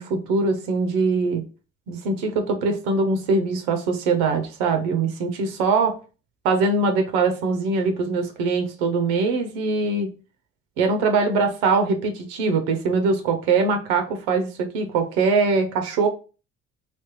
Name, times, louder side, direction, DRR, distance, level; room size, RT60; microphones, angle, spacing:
voice 1, 0.0-1.4 1.9-5.9 6.4-10.1 10.8-16.1, right 4 dB, 85° right, 6 dB, 0.7 m, -22 dB
3.4 x 2.9 x 3.0 m, 0.35 s
hypercardioid pair, 60°, 30 cm